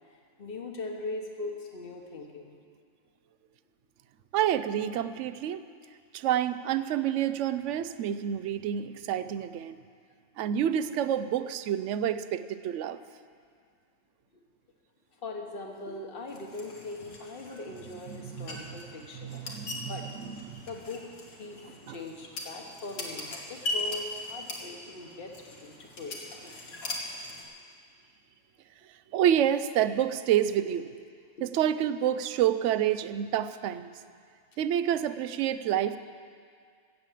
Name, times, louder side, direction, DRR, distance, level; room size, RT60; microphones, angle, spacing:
voice 1, 0.1-2.6 14.3-14.4 15.2-19.4 19.8-20.0 20.7-21.0 21.3-26.5 31.4-31.5, left 2 dB, 45° left, 2 dB, 1.5 m, -41 dB
voice 2, 4.3-5.6 6.1-9.8 10.4-13.0 18.1-18.6 19.2-20.6 21.9-22.0 29.1-30.8 31.4-33.9 34.6-36.0, right 10 dB, 70° right, 13 dB, 0.8 m, -28 dB
sound 1, 16.3-27.4, left 2 dB, 80° left, 2.0 m, -40 dB
16.5 x 7.4 x 7.5 m, 2.2 s
omnidirectional pair, 1.5 m